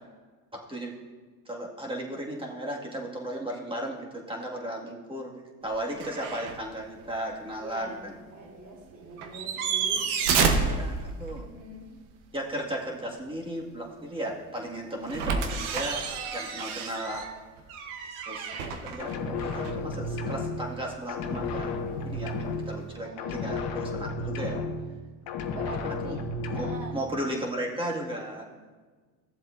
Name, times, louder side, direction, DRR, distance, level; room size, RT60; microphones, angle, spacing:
voice 1, 0.5-0.9 1.5-8.1 10.4-10.9 11.2-11.4 12.3-16.0 16.3-17.3 18.3-21.7 22.0-22.3 22.7-24.6 25.8-26.2 26.5-28.4, right 1 dB, 10° right, -2 dB, 1.9 m, -35 dB
sound 1, 6.0-6.6 7.0-7.1 9.2-11.5 15.1-19.9 22.0-22.1, right 5 dB, 85° right, 1.0 m, -30 dB
voice 2, 7.6-10.0 10.6-10.8 11.3-11.9 22.9-23.5 25.5-26.2 26.5-27.0, right 2 dB, 40° right, -1 dB, 3.2 m, -44 dB
sound 2, 19.0-20.8 21.1-22.9 23.2-25.0 25.3-27.0, left 3 dB, 60° left, 1.1 m, -33 dB
15.0 x 7.4 x 2.6 m, 1.4 s
supercardioid pair, 90°, 43 cm